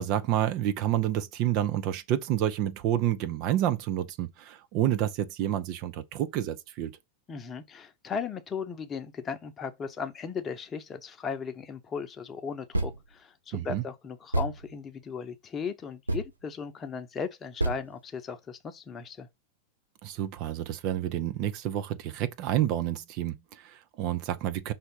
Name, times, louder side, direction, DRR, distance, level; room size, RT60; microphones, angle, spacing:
voice 1, 0.0-7.0 13.5-13.8 20.0-24.7, right 11 dB, 40° right, 0.6 m, -29 dB
voice 2, 7.3-19.3, left 6 dB, 25° left, 0.9 m, -37 dB
sound 1, 12.7-13.1 13.6-13.7 14.3-14.8 16.1-16.3 17.6-17.9, right 2 dB, 85° right, 0.6 m, -29 dB
5.7 x 3.4 x 5.5 m
figure-of-eight pair, 90°, 0 cm